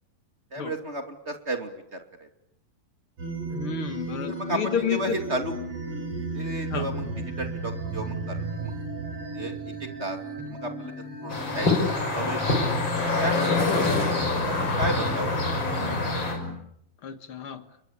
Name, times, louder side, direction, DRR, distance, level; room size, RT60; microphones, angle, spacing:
voice 1, 0.5-2.3 4.3-5.5 6.3-8.7 9.3-10.2 10.5-12.6 13.2-15.4, right 2 dB, 20° right, 6 dB, 2.4 m, -34 dB
sound 1, 3.2-16.5, right 2 dB, 40° right, 6.6 m, -35 dB
voice 2, 3.5-5.2 6.7-6.9 17.0-17.7, left 8 dB, 50° left, 10 dB, 1.8 m, -30 dB
sound 2, 11.3-16.3, left 3 dB, 30° left, 6.7 m, -25 dB
30.0 x 22.0 x 8.7 m, 0.74 s
omnidirectional pair, 4.1 m